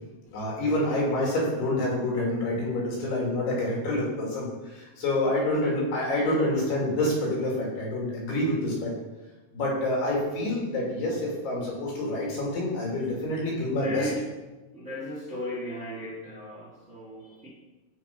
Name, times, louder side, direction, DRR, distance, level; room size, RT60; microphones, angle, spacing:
voice 1, 0.3-8.9 9.5-14.1, left 1 dB, 55° left, -3 dB, 4.3 m, -27 dB
voice 2, 13.7-14.3 14.7-17.5, equal, 80° right, -4 dB, 0.6 m, -35 dB
17.0 x 5.9 x 5.4 m, 1.1 s
omnidirectional pair, 5.9 m